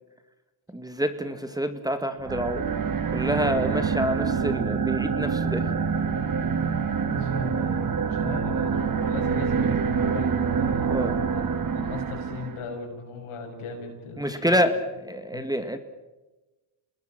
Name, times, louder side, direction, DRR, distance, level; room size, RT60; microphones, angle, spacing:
voice 1, 0.7-2.6 3.1-5.7 10.9-11.2 14.2-15.8, equal, 5° right, 9 dB, 1.9 m, -27 dB
sound 1, 2.2-12.7, right 6 dB, 40° right, 1.8 m, -26 dB
voice 2, 7.0-10.9 11.3-14.6 15.3-15.4, left 4 dB, 80° left, 2 dB, 7.0 m, -38 dB
28.0 x 20.5 x 6.1 m, 1.1 s
cardioid pair, 80°, 50 cm